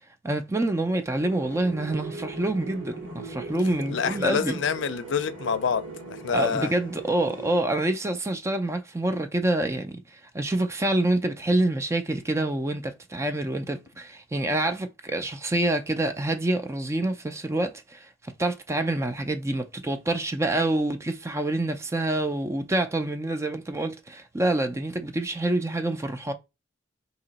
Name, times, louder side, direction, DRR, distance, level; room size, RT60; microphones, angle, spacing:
voice 1, 0.2-4.6 6.3-26.3, right 1 dB, 15° right, 0.4 m, -27 dB
sound 1, 1.2-7.5, right 3 dB, 80° right, 1.6 m, -39 dB
voice 2, 3.9-6.7, left 6 dB, 75° left, 0.5 m, -27 dB
3.0 x 2.9 x 4.0 m
head